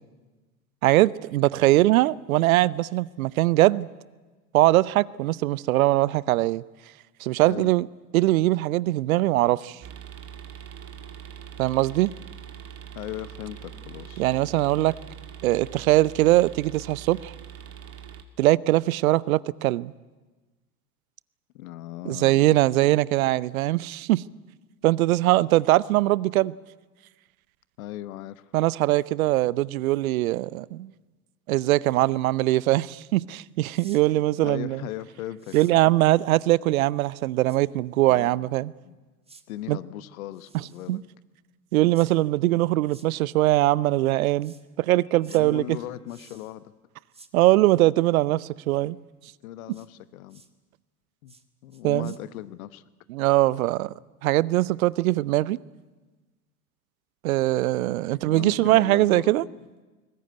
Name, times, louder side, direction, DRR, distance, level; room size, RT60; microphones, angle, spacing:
voice 1, 0.8-3.9 4.5-6.6 7.2-7.9 8.1-9.8 11.6-12.2 14.2-14.9 15.4-17.3 18.4-19.9 22.1-24.3 24.8-26.5 28.5-30.9 31.5-34.8 35.5-38.7 39.7-39.8 40.9-41.0 41.7-45.6 47.3-49.0 51.8-52.1 53.1-53.9 54.2-55.6 57.2-59.4, right 17 dB, 65° right, 0.7 m, -21 dB
sound 1, 9.8-18.2, right 8 dB, 30° right, 2.4 m, -42 dB
voice 2, 12.9-14.3 21.5-22.4 27.8-28.5 34.4-35.8 38.1-38.6 38.8-39.0 39.5-41.0 45.3-46.7 49.4-50.4 51.2-51.4 51.6-52.8 58.1-59.6, left 14 dB, 65° left, 1.2 m, -38 dB
sound 2, 33.6-34.0 35.4-35.7 37.5-37.6 39.2-39.4 40.3-41.0 41.9-42.1 42.9-43.1 44.4-44.6 45.2-45.4 46.1-46.6 47.1-47.3 49.7-49.9 50.3-50.5 51.3-51.4 51.7-52.2, right 4 dB, 15° right, 1.7 m, -52 dB
sound 3, 41.3-41.4 42.4-42.5 43.7-43.8 44.3-44.4 44.7-46.7 47.8-47.9 48.3-48.4 48.7-49.1 49.4-49.5 49.7-49.8 50.2-50.3, left 3 dB, 80° left, 7.9 m, -61 dB
21.5 x 20.0 x 9.3 m
figure-of-eight pair, 80°, 45 cm